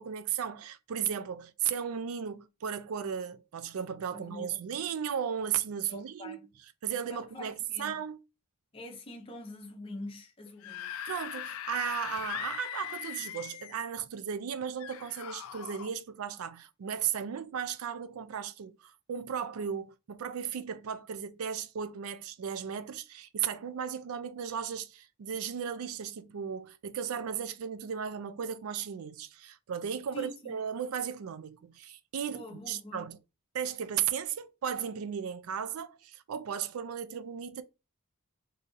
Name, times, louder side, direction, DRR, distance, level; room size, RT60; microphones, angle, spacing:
voice 1, 0.0-6.4 6.8-8.2 11.1-33.2 33.5-37.6, right 8 dB, 80° right, 0.4 m, -35 dB
voice 2, 4.1-4.6 5.9-6.5 7.1-8.0 8.7-10.9 30.1-30.6 32.3-33.1, left 1 dB, 25° left, 0.7 m, -45 dB
Screaming / Screech, 10.5-13.8 14.8-15.9, left 11 dB, 75° left, 0.3 m, -40 dB
2.7 x 2.5 x 3.8 m
head